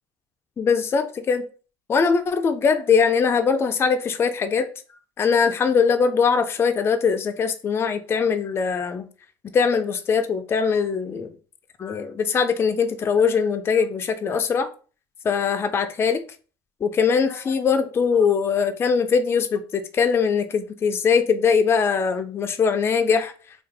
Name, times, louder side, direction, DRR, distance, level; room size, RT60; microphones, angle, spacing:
voice 1, 0.6-1.5 1.9-4.7 5.2-9.1 9.5-11.3 11.8-14.7 15.2-16.2 16.8-23.3, left 6 dB, 25° left, 0.3 m, -21 dB
2.5 x 2.3 x 3.8 m
cardioid pair, 115°, 9 cm